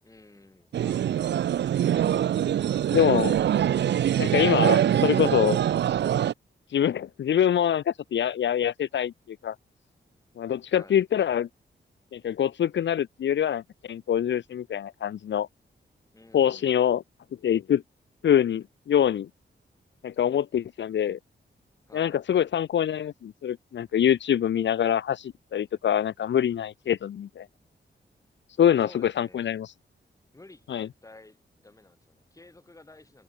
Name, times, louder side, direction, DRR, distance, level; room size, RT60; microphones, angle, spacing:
voice 1, 0.0-1.1 10.7-11.0 16.1-16.8 21.9-22.2 28.8-29.5 30.3-33.2, left 2 dB, 15° left, 6.4 m, -52 dB
sound 1, 0.7-6.3, right 10 dB, 70° right, 0.4 m, -24 dB
voice 2, 2.9-3.3 4.2-5.6 6.7-9.1 9.4-9.6 10.4-11.5 12.1-15.5 16.3-17.0 17.4-17.8 18.2-19.3 20.0-21.2 21.9-27.5 28.6-29.7 30.7-30.9, left 9 dB, 75° left, 0.7 m, -25 dB
wide cardioid pair, 155°, 19 cm